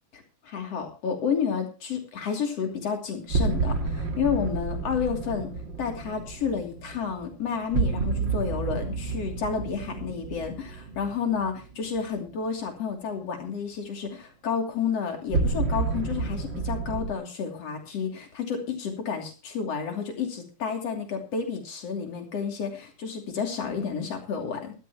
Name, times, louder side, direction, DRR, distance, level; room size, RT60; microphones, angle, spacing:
voice 1, 0.1-5.5 5.8-24.7, left 6 dB, 55° left, 3 dB, 3.8 m, -31 dB
sound 1, 3.3-12.3 15.3-17.1, right 4 dB, 45° right, 2.0 m, -30 dB
17.5 x 13.0 x 3.0 m, 0.33 s
omnidirectional pair, 3.5 m